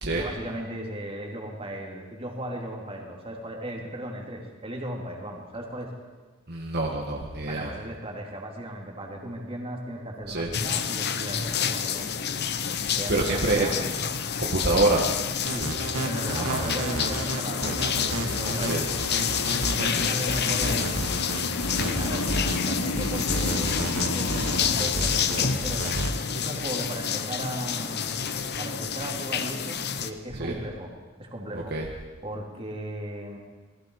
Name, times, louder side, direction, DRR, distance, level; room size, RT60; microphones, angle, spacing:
voice 1, 0.1-5.9 7.4-12.2 13.0-13.8 15.5-18.8 19.8-21.2 21.7-25.9 26.3-28.1 28.6-30.9 31.2-31.7 32.2-33.4, right 1 dB, 25° right, 0 dB, 3.3 m, -36 dB
voice 2, 6.5-7.7 10.3-10.5 13.1-13.7 14.4-15.0 16.4-16.6 18.7-18.8 24.4-24.5 30.4-30.5 31.5-31.9, right 2 dB, 50° right, -1 dB, 1.9 m, -26 dB
sound 1, 10.5-30.1, left 7 dB, 50° left, 1.0 m, -29 dB
sound 2, 15.5-26.1, right 1 dB, 85° right, 2.5 m, -31 dB
sound 3, 16.1-24.8, left 2 dB, 80° left, 1.2 m, -34 dB
28.0 x 20.0 x 4.9 m, 1.3 s
head